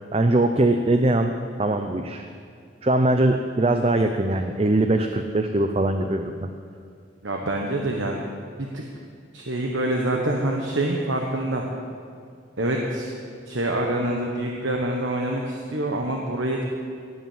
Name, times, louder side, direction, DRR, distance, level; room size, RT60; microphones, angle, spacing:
voice 1, 0.1-1.3 1.6-2.3 2.8-6.5, right 2 dB, 30° right, 6 dB, 0.5 m, -21 dB
voice 2, 7.2-8.3 8.6-8.8 9.3-11.6 12.6-13.1 13.5-16.6, right 1 dB, 75° right, 0 dB, 1.3 m, -26 dB
18.0 x 8.5 x 7.4 m, 2.3 s
head